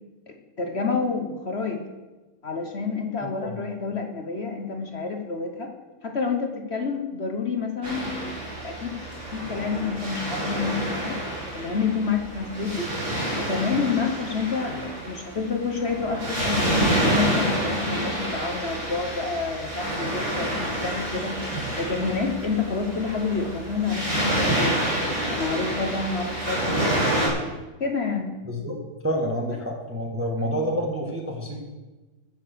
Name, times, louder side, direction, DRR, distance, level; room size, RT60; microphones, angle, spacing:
voice 1, 0.3-1.8 2.4-5.7 6.0-8.4 8.6-9.0 9.3-11.2 11.5-12.9 13.4-14.8 15.0-21.4 21.8-24.8 25.3-26.9 27.8-28.3 28.6-28.7, left 4 dB, 40° left, 4 dB, 1.1 m, -28 dB
Waves surf, 7.8-27.3, right 1 dB, 65° right, 5.6 m, -28 dB
voice 2, 29.0-31.6, equal, 5° right, 0 dB, 1.5 m, -28 dB
15.0 x 6.8 x 6.8 m, 1.2 s
omnidirectional pair, 2.2 m